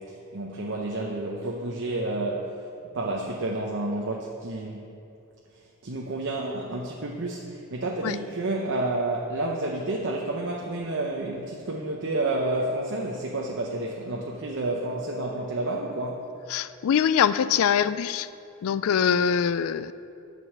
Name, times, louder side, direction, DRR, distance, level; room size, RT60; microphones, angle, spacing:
voice 1, 0.0-2.6 2.9-4.9 5.5-16.3, right 2 dB, 55° right, -1 dB, 0.8 m, -30 dB
voice 2, 16.5-18.3 18.6-19.9, left 8 dB, 65° left, 15 dB, 0.3 m, -23 dB
9.6 x 5.3 x 7.3 m, 2.7 s
head